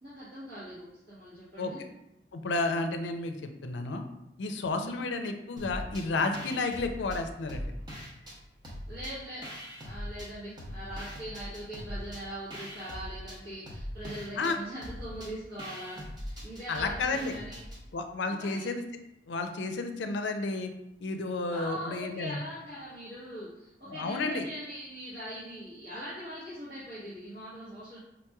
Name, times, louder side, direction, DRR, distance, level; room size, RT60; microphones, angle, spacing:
voice 1, 0.0-1.8 4.8-4.9 8.9-9.4 9.8-17.6 18.3-18.7 21.5-28.0, equal, 55° right, -12 dB, 1.4 m, -41 dB
voice 2, 2.3-4.0 4.4-7.6 14.4-14.6 16.7-17.3 17.9-18.8 19.3-20.7 21.0-22.4 23.9-24.5, left 3 dB, 75° left, 6 dB, 0.4 m, -31 dB
sound 1, 5.6-6.1 6.3-8.4 8.6-10.3 10.6-17.8, equal, 25° right, 0.8 m, -41 dB
5.0 x 3.0 x 2.3 m, 0.85 s
head